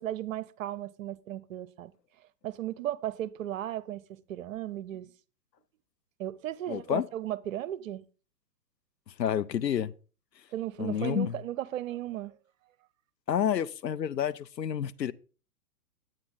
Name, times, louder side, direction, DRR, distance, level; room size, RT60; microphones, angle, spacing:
voice 1, 0.0-1.9 2.4-4.0 4.3-5.1 6.2-8.0 10.5-12.3, right 12 dB, 55° right, 0.9 m, -35 dB
voice 2, 6.7-7.0 9.2-9.9 10.8-11.4 13.3-15.1, left 9 dB, 90° left, 0.7 m, -29 dB
9.8 x 8.9 x 3.8 m
hypercardioid pair, 125°, 49 cm